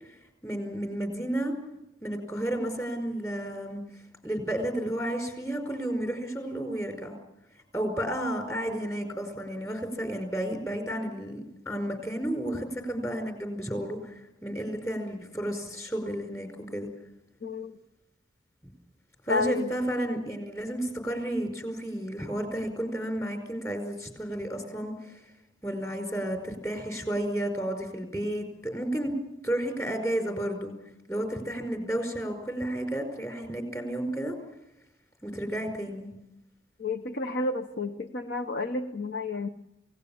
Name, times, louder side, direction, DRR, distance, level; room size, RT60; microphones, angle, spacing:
voice 1, 0.4-1.5 2.0-3.8 4.2-7.1 7.7-14.1 14.4-16.9 19.2-25.1 25.6-29.1 29.4-30.7 31.1-34.3 35.2-36.1, right 1 dB, 15° left, 5 dB, 5.0 m, -32 dB
voice 2, 17.4-17.7 19.3-19.7 36.8-39.5, left 3 dB, 55° left, 7 dB, 1.0 m, -31 dB
28.5 x 18.0 x 7.2 m, 0.86 s
head